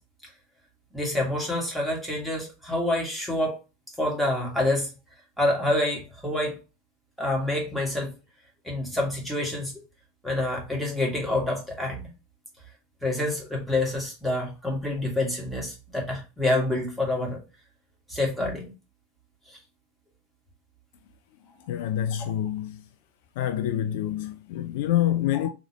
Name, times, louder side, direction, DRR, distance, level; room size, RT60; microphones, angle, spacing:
voice 1, 0.9-3.6 4.0-4.9 5.4-6.6 7.2-8.1 8.6-9.7 10.2-12.1 13.0-17.4 18.1-18.6 19.5-19.6 25.3-25.5, left 1 dB, ahead, 1.9 m, -27 dB
voice 2, 21.7-22.8 23.4-25.5, left 12 dB, 60° left, 0.3 m, -26 dB
3.7 x 3.0 x 3.0 m
figure-of-eight pair, 80°, 0 cm